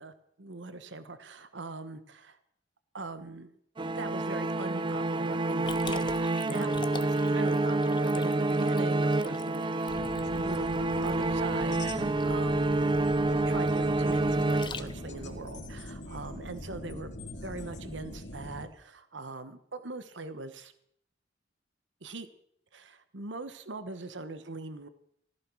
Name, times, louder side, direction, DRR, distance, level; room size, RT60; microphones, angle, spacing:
voice 1, 0.0-2.4 2.9-3.6 3.9-9.7 10.2-12.8 13.2-20.7 22.0-22.3 22.7-24.9, right 3 dB, 75° right, 11 dB, 1.2 m, -41 dB
sound 1, 3.8-15.2, right 2 dB, 25° right, 0.5 m, -28 dB
Liquid, 5.7-15.3, left 5 dB, 25° left, 0.8 m, -46 dB
sound 2, 9.9-18.6, left 1 dB, 65° left, 3.1 m, -42 dB
15.0 x 14.0 x 6.2 m, 0.70 s
head